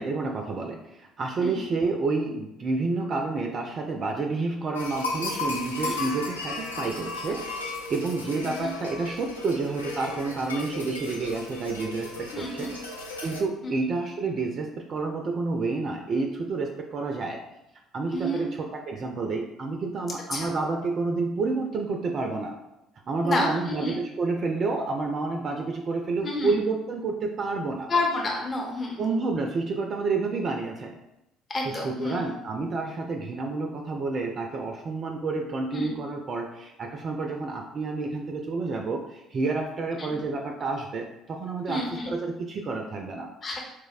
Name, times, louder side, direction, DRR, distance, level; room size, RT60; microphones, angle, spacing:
voice 1, 0.0-12.7 13.2-17.4 17.9-22.6 23.1-27.9 29.0-31.0 31.6-43.3, right 3 dB, 45° right, 3 dB, 0.3 m, -29 dB
sound 1, 4.7-13.4, left 2 dB, 85° left, 0.3 m, -35 dB
voice 2, 12.3-12.7 13.6-13.9 18.1-18.5 20.3-20.5 23.2-23.9 26.2-26.6 27.9-29.0 31.5-32.2 35.7-36.0 40.0-40.2 41.7-42.2 43.4-43.6, left 2 dB, 35° left, -1 dB, 0.8 m, -30 dB
4.4 x 2.0 x 2.4 m, 0.90 s
figure-of-eight pair, 50°, 0 cm